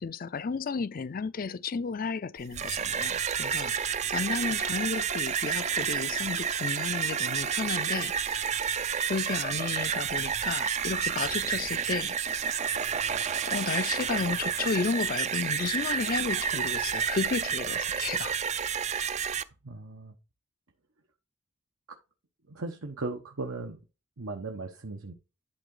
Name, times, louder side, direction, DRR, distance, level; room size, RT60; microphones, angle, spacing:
voice 1, 0.0-8.4 9.1-12.1 13.5-18.4, left 4 dB, 45° left, 0.4 m, -33 dB
sound 1, 2.4-19.4, right 7 dB, 35° right, 0.4 m, -30 dB
voice 2, 19.6-20.1 22.5-23.8 24.2-25.1, right 3 dB, 85° right, 1.1 m, -37 dB
11.5 x 3.9 x 3.8 m
head